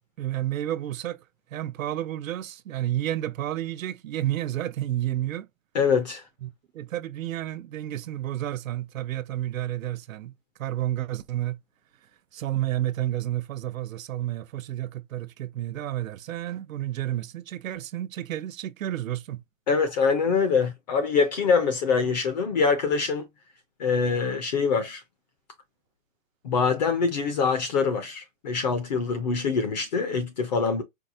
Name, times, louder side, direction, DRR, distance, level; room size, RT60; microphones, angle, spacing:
voice 1, 0.2-1.2 1.5-5.5 6.4-11.6 12.3-19.4, right 13 dB, 85° right, 0.7 m, -31 dB
voice 2, 5.7-6.2 19.7-23.3 23.8-25.0 26.4-30.8, left 5 dB, 35° left, 0.6 m, -24 dB
4.6 x 2.1 x 2.7 m
hypercardioid pair, 170°, 39 cm